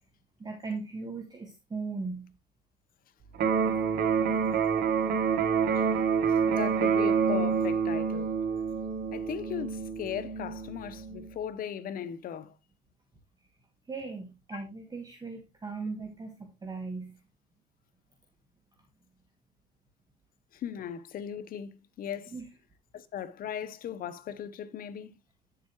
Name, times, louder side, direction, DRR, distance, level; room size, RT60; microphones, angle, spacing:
voice 1, 0.4-2.3 13.9-17.1 22.3-22.5, right 4 dB, 25° right, 1.5 m, -38 dB
Electric guitar, 3.3-11.3, right 6 dB, 65° right, 1.5 m, -27 dB
voice 2, 6.3-8.4 9.1-12.6 14.5-14.6 20.5-22.3 22.9-25.1, left 9 dB, 60° left, 1.0 m, -37 dB
9.4 x 7.1 x 3.1 m
cardioid pair, 110°, 17 cm